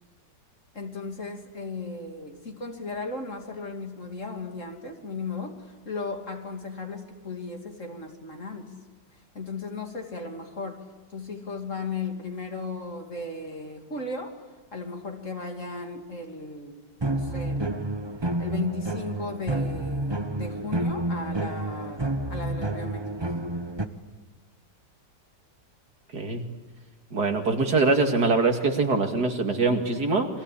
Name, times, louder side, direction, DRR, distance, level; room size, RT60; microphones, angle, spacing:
voice 1, 0.7-8.7 9.3-10.8 11.1-14.4 14.7-17.9 18.4-23.1, left 3 dB, 45° left, 3 dB, 3.1 m, -36 dB
sound 1, 17.0-23.9, right 1 dB, 20° right, 0.9 m, -29 dB
voice 2, 27.1-30.3, right 3 dB, 60° right, 4 dB, 2.9 m, -23 dB
29.5 x 23.0 x 8.6 m, 1.2 s
omnidirectional pair, 1.9 m